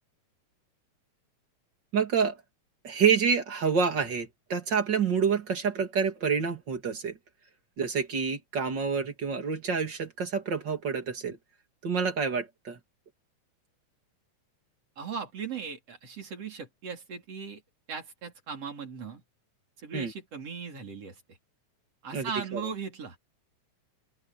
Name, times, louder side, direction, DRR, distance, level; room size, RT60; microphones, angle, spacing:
voice 1, 1.9-2.4 2.8-7.2 7.8-11.4 11.8-12.8 19.9-20.1 22.1-22.6, right 6 dB, 40° right, 3.0 m, -28 dB
voice 2, 15.0-17.6 17.9-19.2 19.8-21.2 22.0-23.2, right 6 dB, 55° right, 4.9 m, -38 dB
open air
omnidirectional pair, 3.3 m